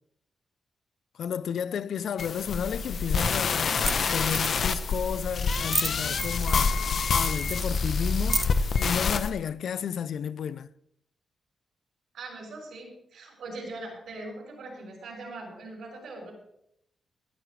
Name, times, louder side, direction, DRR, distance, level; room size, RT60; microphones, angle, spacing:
voice 1, 1.2-6.7 7.1-10.7, left 8 dB, 75° left, 0.5 m, -32 dB
sound 1, 2.2-9.3, left 5 dB, 55° left, 0.9 m, -27 dB
sound 2, 2.8-2.9 3.6-3.7 3.9-4.0 4.2-5.0 5.5-6.7 7.1-8.7, right 3 dB, 25° right, 0.4 m, -32 dB
voice 2, 12.1-16.3, right 2 dB, 85° right, 6.5 m, -41 dB
19.5 x 12.0 x 3.3 m
wide cardioid pair, 125°, 0 cm